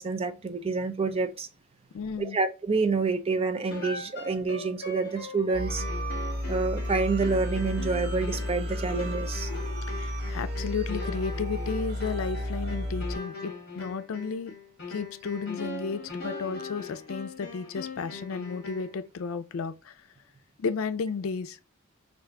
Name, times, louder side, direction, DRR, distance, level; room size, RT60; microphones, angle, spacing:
voice 1, 0.0-1.5 2.2-5.8 6.5-9.5, right 4 dB, 30° right, 0.4 m, -28 dB
voice 2, 1.9-2.4 8.9-9.0 9.5-14.5 14.9-20.0 20.6-21.6, left 5 dB, 90° left, 0.4 m, -33 dB
sound 1, 3.7-19.0, left 3 dB, 50° left, 1.1 m, -40 dB
sound 2, 5.5-13.2, equal, 50° right, 0.9 m, -32 dB
3.4 x 2.5 x 3.6 m
head